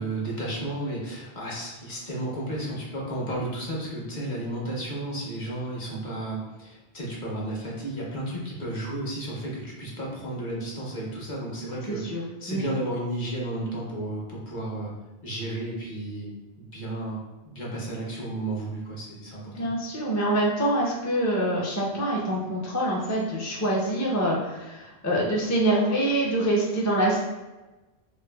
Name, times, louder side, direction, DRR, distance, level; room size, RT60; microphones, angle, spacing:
voice 1, 0.0-14.9 15.2-16.3 16.6-19.7, right 1 dB, 50° left, -4 dB, 1.0 m, -33 dB
voice 2, 11.9-12.2 12.5-12.6 19.5-27.2, right 1 dB, 25° left, -4 dB, 0.4 m, -25 dB
4.5 x 2.2 x 2.2 m, 1.1 s
omnidirectional pair, 1.1 m